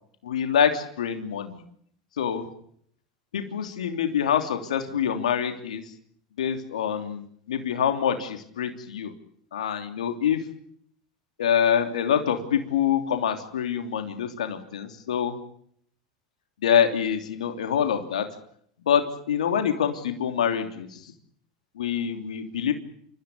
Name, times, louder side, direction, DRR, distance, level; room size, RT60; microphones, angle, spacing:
voice 1, 0.2-1.6 2.2-2.5 3.3-5.8 6.4-9.1 9.5-10.4 11.4-15.3 16.6-18.2 18.9-20.9 21.8-22.7, left 8 dB, 85° left, 6 dB, 3.1 m, -25 dB
29.0 x 15.0 x 9.6 m, 0.66 s
hypercardioid pair, 95°, 4 cm